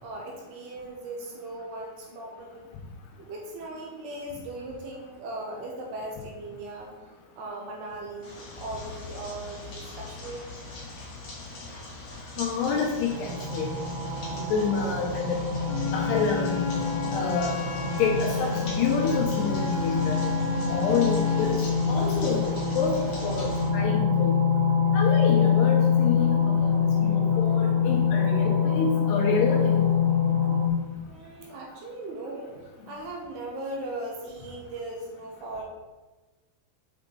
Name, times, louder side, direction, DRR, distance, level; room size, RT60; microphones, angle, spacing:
voice 1, 0.0-2.7 3.2-6.9 7.4-10.5 31.1-32.6 32.9-35.6, right 2 dB, 75° right, -1 dB, 2.6 m, -38 dB
sound 1, 8.2-23.7, left 3 dB, 45° left, 2.3 m, -41 dB
voice 2, 12.4-13.7 14.4-15.4 15.9-16.6 17.1-17.5 17.9-20.2 20.7-21.6 21.9-22.5 22.7-24.4 24.9-29.8, left 5 dB, 75° left, -2 dB, 2.6 m, -28 dB
sound 2, 13.1-30.7, left 6 dB, 90° right, 4.1 m, -25 dB
Wind instrument woodwind instrument, 15.6-21.7, left 8 dB, 90° left, 2.4 m, -35 dB
8.3 x 5.1 x 3.9 m, 1.2 s
omnidirectional pair, 5.5 m